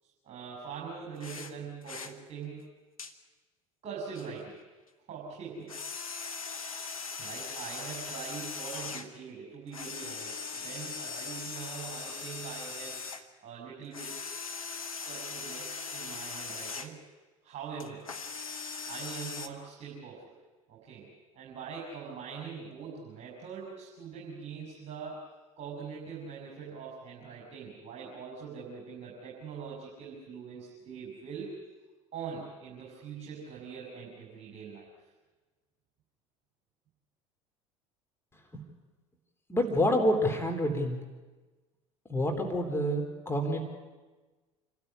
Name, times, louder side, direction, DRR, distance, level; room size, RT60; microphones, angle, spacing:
voice 1, 0.0-2.6 3.8-4.6 5.1-5.8 7.2-13.1 13.4-14.2 15.0-17.0 17.4-18.0 18.9-20.3 20.7-21.1 21.4-25.2 25.6-31.6 32.1-34.9, right 6 dB, 40° right, -4 dB, 5.8 m, -43 dB
sound 1, 1.2-1.5 1.8-2.1 3.0-3.1 4.1-4.3 5.7-9.1 9.7-13.2 13.9-16.9 17.8-19.5, left 5 dB, 85° left, 1.1 m, -40 dB
voice 2, 39.5-41.0 42.1-43.6, equal, 15° left, 3 dB, 3.6 m, -27 dB
27.0 x 13.0 x 9.8 m, 1.3 s
figure-of-eight pair, 65°, 17 cm